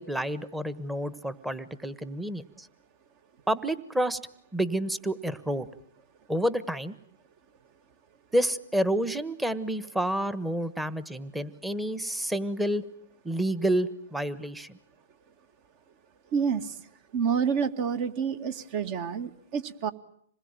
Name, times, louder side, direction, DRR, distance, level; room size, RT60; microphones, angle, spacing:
voice 1, 0.0-2.7 3.5-4.2 4.5-5.7 6.3-6.9 8.3-12.8 13.2-14.8, right 1 dB, 5° right, 15 dB, 1.4 m, -29 dB
voice 2, 16.3-16.7 17.1-19.9, right 6 dB, 40° right, 11 dB, 2.2 m, -28 dB
26.5 x 21.0 x 9.1 m, 0.68 s
hypercardioid pair, 135°, 0 cm